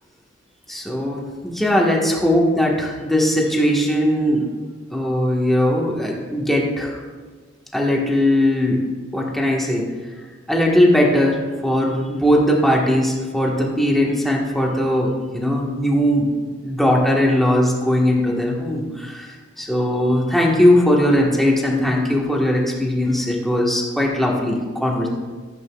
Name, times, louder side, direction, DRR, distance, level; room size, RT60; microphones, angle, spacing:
voice 1, 0.7-4.5 4.9-7.0 7.7-8.8 9.1-9.8 10.5-16.3 16.6-19.3 19.6-25.1, left 1 dB, ahead, -2 dB, 1.3 m, -19 dB
14.5 x 8.0 x 2.3 m, 1.4 s
head